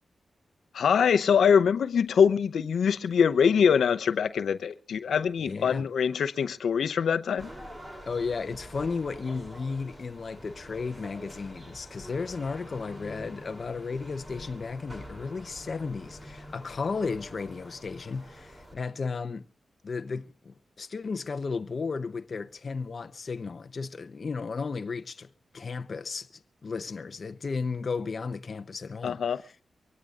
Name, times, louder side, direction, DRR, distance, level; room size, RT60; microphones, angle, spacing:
voice 1, 0.7-7.5 29.0-29.4, left 7 dB, 85° left, 0.7 m, -23 dB
voice 2, 5.4-5.9 8.1-19.5 19.8-25.3 25.5-26.3 26.6-29.5, left 4 dB, 45° left, 0.7 m, -34 dB
sound 1, 7.4-18.7, equal, 15° right, 3.3 m, -46 dB
24.0 x 17.5 x 2.5 m
wide cardioid pair, 110°, 0 cm